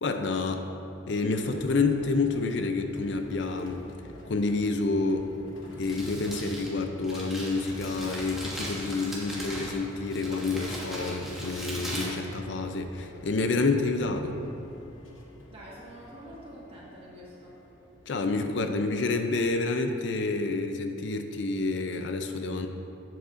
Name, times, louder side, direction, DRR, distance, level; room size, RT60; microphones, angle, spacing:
voice 1, 0.0-0.7 1.1-3.8 4.2-5.3 5.8-14.4 18.1-22.7, left 3 dB, 65° left, 6 dB, 0.5 m, -28 dB
sound 1, 1.4-19.1, left 1 dB, 85° left, 1.0 m, -50 dB
Crumpling crinkling, 5.6-12.9, equal, ahead, 1.3 m, -39 dB
voice 2, 15.5-17.6, equal, 30° right, -6 dB, 1.6 m, -46 dB
11.0 x 7.7 x 2.6 m, 2.9 s
head